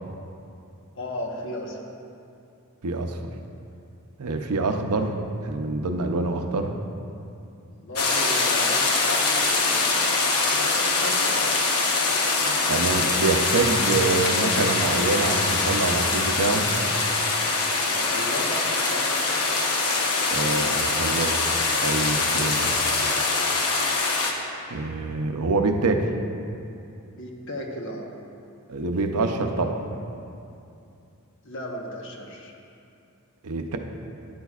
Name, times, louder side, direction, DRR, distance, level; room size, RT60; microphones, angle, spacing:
voice 1, 1.0-1.8 7.7-10.1 10.5-12.7 17.8-19.1 27.2-28.1 31.4-32.5, left 1 dB, 60° left, 0 dB, 1.1 m, -35 dB
voice 2, 2.8-3.2 4.2-5.1 5.4-6.7 12.7-16.7 20.3-21.3 21.8-22.8 24.7-26.1 28.7-29.8 33.4-33.8, right 3 dB, 85° right, 4 dB, 0.7 m, -25 dB
sound 1, 8.0-24.3, left 3 dB, 85° left, 1.0 m, -23 dB
12.5 x 10.0 x 2.4 m, 2.6 s
head